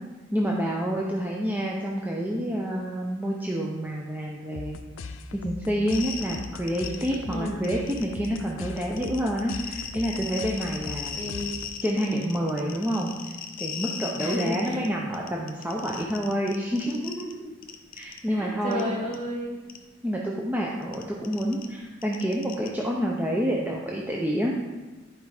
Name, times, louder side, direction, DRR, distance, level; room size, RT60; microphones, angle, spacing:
voice 1, 0.3-4.8 5.3-11.2 11.8-13.1 13.6-17.5 17.9-18.8 20.0-24.5, equal, 10° right, -2 dB, 0.7 m, -28 dB
sound 1, 4.5-12.0, left 4 dB, 85° left, 0.5 m, -40 dB
sound 2, 5.9-7.3 7.6-8.4 8.8-14.9 15.1-17.3 17.6-18.2 18.7-18.8 19.1-19.2 19.7-19.8 20.8-22.7, left 7 dB, 45° left, 0.7 m, -37 dB
voice 2, 7.3-7.6 11.1-11.5 14.2-14.8 18.3-19.6, left 1 dB, 35° right, -2 dB, 1.9 m, -32 dB
10.5 x 4.7 x 4.9 m, 1.2 s
head